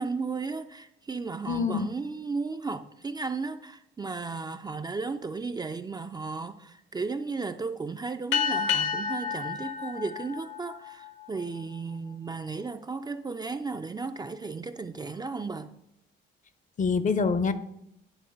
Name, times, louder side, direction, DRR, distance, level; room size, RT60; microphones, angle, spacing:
voice 1, 0.0-15.8, right 4 dB, 20° right, 0.3 m, -34 dB
voice 2, 1.5-1.9 16.8-17.5, left 5 dB, 40° left, 0.6 m, -25 dB
sound 1, 8.3-11.3, left 7 dB, 75° left, 1.0 m, -30 dB
9.9 x 3.7 x 5.1 m
cardioid pair, 90°, 20 cm